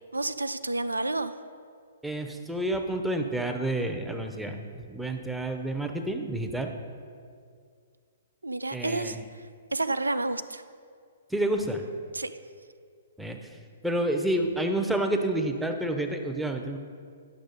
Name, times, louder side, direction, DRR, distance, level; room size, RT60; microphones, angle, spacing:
voice 1, 0.1-1.3 8.4-9.2 9.7-10.6 12.1-12.3, right 2 dB, 85° right, 12 dB, 0.3 m, -29 dB
voice 2, 2.0-6.8 8.7-9.2 11.3-11.8 13.2-13.5 13.8-16.8, right 1 dB, ahead, 3 dB, 0.6 m, -29 dB
10.0 x 6.3 x 4.0 m, 2.1 s
figure-of-eight pair, 120°, 0 cm